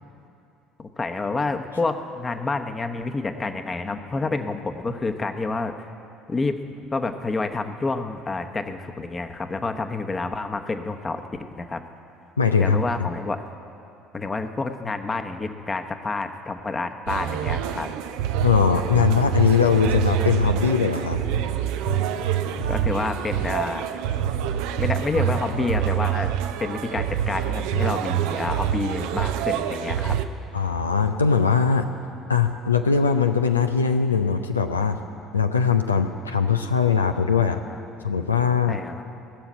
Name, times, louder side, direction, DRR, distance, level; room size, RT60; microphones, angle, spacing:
voice 1, 0.8-5.9 6.3-11.2 11.5-11.8 12.6-13.4 14.1-17.9 22.7-23.9 24.8-26.3 26.6-30.2 37.6-37.8 38.7-39.0, left 3 dB, 25° left, 7 dB, 1.0 m, -28 dB
voice 2, 12.4-12.8 18.4-21.2 30.5-31.9 32.3-35.0 35.3-37.6 38.0-38.8, left 6 dB, 90° left, 6 dB, 0.5 m, -21 dB
sound 1, 17.1-30.3, right 9 dB, 65° right, 0.6 m, -26 dB
18.0 x 7.1 x 9.1 m, 2.7 s
figure-of-eight pair, 60°, 0 cm